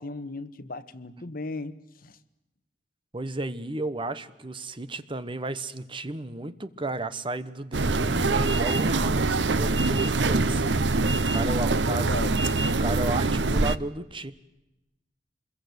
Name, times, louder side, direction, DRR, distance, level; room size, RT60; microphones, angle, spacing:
voice 1, 0.0-2.2 11.1-12.5, left 2 dB, 55° left, 10 dB, 1.4 m, -37 dB
voice 2, 3.1-11.0 11.3-12.1 12.8-14.3, right 2 dB, 30° right, 13 dB, 1.1 m, -33 dB
sound 1, 7.7-13.8, right 3 dB, 85° right, 0.9 m, -24 dB
26.5 x 22.0 x 8.1 m, 0.96 s
head